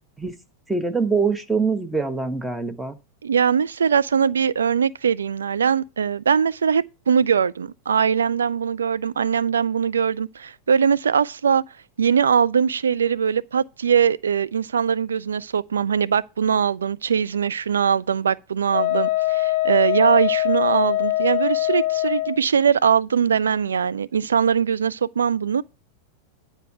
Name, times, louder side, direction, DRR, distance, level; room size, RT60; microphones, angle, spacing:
voice 1, 0.7-3.0, right 4 dB, 5° right, 1.1 m, -24 dB
voice 2, 3.2-11.6 12.0-25.6, right 7 dB, 70° right, 0.4 m, -21 dB
Wind instrument woodwind instrument, 18.7-22.4, left 17 dB, 50° left, 0.4 m, -22 dB
9.6 x 4.6 x 7.8 m
figure-of-eight pair, 90°, 0 cm